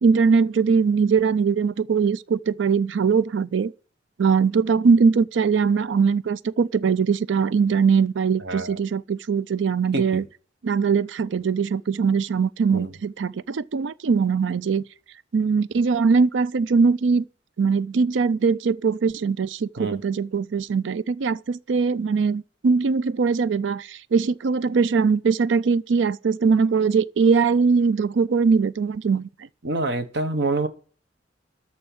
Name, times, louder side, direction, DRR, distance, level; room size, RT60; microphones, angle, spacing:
voice 1, 0.0-3.7 4.2-10.2 10.6-14.8 15.3-17.2 17.6-29.3, right 5 dB, 90° right, 0.4 m, -21 dB
voice 2, 8.4-8.7 9.9-10.2 12.7-12.9 19.8-20.0 29.6-30.7, right 2 dB, 65° right, 1.3 m, -26 dB
13.5 x 4.6 x 8.4 m
head